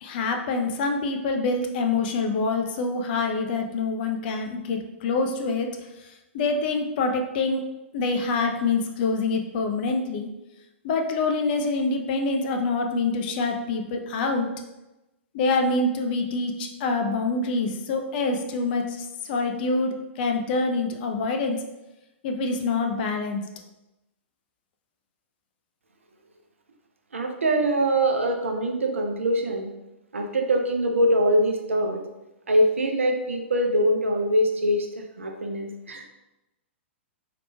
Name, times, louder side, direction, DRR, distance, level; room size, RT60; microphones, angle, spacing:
voice 1, 0.0-5.7 6.3-7.6 7.9-10.3 10.8-14.5 15.3-21.6 22.2-23.4, left 3 dB, 50° left, 4 dB, 0.5 m, -26 dB
voice 2, 27.1-29.7 30.1-32.0 32.5-34.9 35.2-36.0, right 1 dB, 80° right, 3 dB, 0.6 m, -23 dB
4.0 x 2.9 x 2.2 m, 0.97 s
figure-of-eight pair, 110°, 7 cm